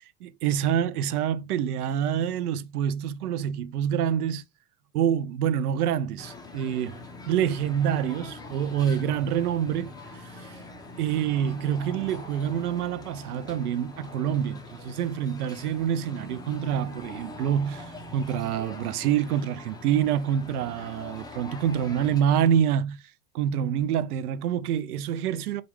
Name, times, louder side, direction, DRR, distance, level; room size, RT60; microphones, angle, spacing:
voice 1, 0.2-4.4 4.9-7.0 7.3-10.6 11.0-23.0 23.3-25.6, right 9 dB, 70° right, 0.6 m, -26 dB
sound 1, 6.2-22.2, left 2 dB, 10° left, 0.7 m, -43 dB
4.4 x 2.5 x 3.4 m
hypercardioid pair, 95°, 46 cm